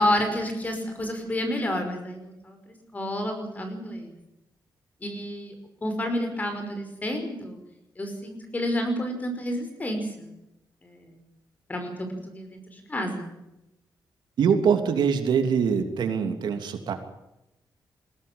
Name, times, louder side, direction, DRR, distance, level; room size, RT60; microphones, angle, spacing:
voice 1, 0.0-4.1 5.0-5.5 5.8-7.6 8.0-10.3 10.8-11.1 11.7-13.3, left 1 dB, 20° left, 6 dB, 5.4 m, -30 dB
voice 2, 14.4-16.9, right 6 dB, 85° right, 6 dB, 3.1 m, -23 dB
21.5 x 17.0 x 8.8 m, 0.88 s
wide cardioid pair, 160°, 7 cm